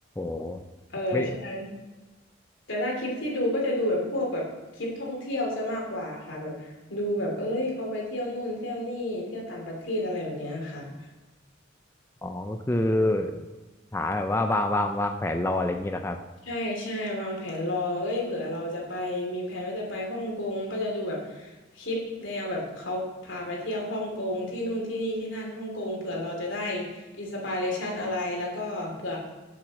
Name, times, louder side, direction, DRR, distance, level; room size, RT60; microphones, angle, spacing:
voice 1, 0.2-0.6 1.1-1.4 12.2-13.5 13.9-16.2, left 1 dB, 15° left, 5 dB, 0.4 m, -27 dB
voice 2, 0.9-1.7 2.7-4.5 4.7-10.9 16.4-29.2, left 1 dB, 80° left, -1 dB, 2.9 m, -31 dB
7.8 x 7.4 x 6.2 m, 1.2 s
head